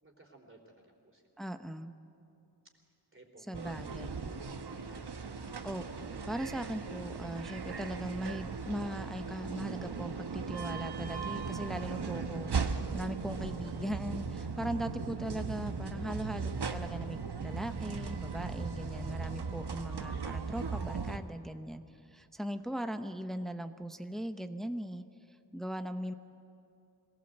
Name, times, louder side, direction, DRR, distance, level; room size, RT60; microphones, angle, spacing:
voice 1, 0.0-1.5 3.1-4.2 4.7-5.3 22.7-23.0, right 1 dB, 30° right, 2 dB, 3.6 m, -58 dB
voice 2, 1.4-1.9 3.5-4.3 5.6-21.8 22.1-25.0 25.5-26.1, equal, ahead, 8 dB, 0.8 m, -39 dB
sound 1, 3.5-21.2, right 5 dB, 70° right, 1.1 m, -38 dB
sound 2, 3.7-19.7, left 1 dB, 50° left, 3.4 m, -59 dB
22.0 x 17.5 x 7.9 m, 2.6 s
wide cardioid pair, 50°, 41 cm